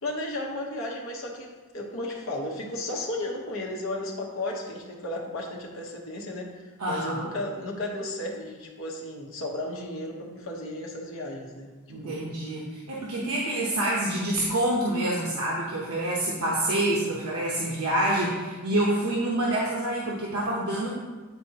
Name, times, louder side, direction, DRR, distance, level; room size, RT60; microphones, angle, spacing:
voice 1, 0.0-11.7 12.0-12.3, left 1 dB, 65° left, -1 dB, 1.0 m, -34 dB
voice 2, 6.8-7.2 11.9-20.9, right 1 dB, 85° right, -5 dB, 0.9 m, -27 dB
9.2 x 4.2 x 2.9 m, 1.3 s
head